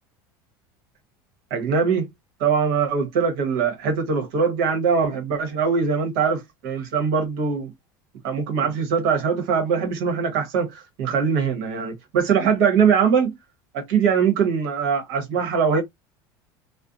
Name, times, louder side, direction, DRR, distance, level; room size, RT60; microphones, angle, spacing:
voice 1, 1.5-2.1 2.4-7.7 8.2-13.4 13.7-15.8, right 6 dB, 70° right, 1.2 m, -22 dB
2.4 x 2.1 x 2.5 m
supercardioid pair, 100°, 11 cm